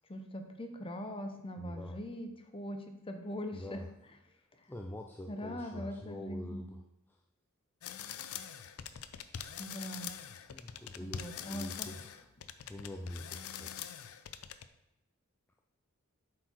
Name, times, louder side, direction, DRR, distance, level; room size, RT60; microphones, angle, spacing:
voice 1, 0.1-3.8 5.3-6.7 9.6-10.1 11.0-11.9, equal, 25° left, 6 dB, 0.7 m, -41 dB
voice 2, 1.6-2.0 3.5-3.9 4.7-6.8 7.1-7.2 10.5-12.3 12.7-14.1, left 1 dB, 10° left, 1 dB, 0.4 m, -45 dB
sound 1, 7.8-14.7, left 9 dB, 80° left, 0.5 m, -44 dB
7.4 x 4.6 x 4.4 m, 0.92 s
head